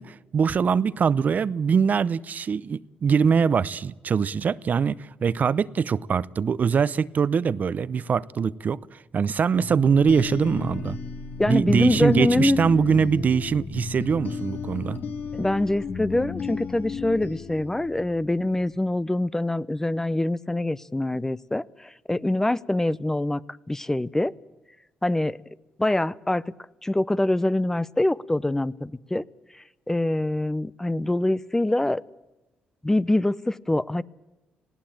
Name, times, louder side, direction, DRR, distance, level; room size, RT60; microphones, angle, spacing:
voice 1, 0.0-11.0 11.5-15.0, right 6 dB, 50° right, 0.7 m, -23 dB
sound 1, 9.6-18.3, left 6 dB, 65° left, 2.3 m, -33 dB
voice 2, 11.4-12.6 15.3-23.4 23.7-24.3 25.0-25.4 25.8-26.5 26.8-29.2 29.9-32.0 32.8-34.0, left 1 dB, 15° left, 0.7 m, -24 dB
19.0 x 17.0 x 8.9 m
cardioid pair, 70°, 4 cm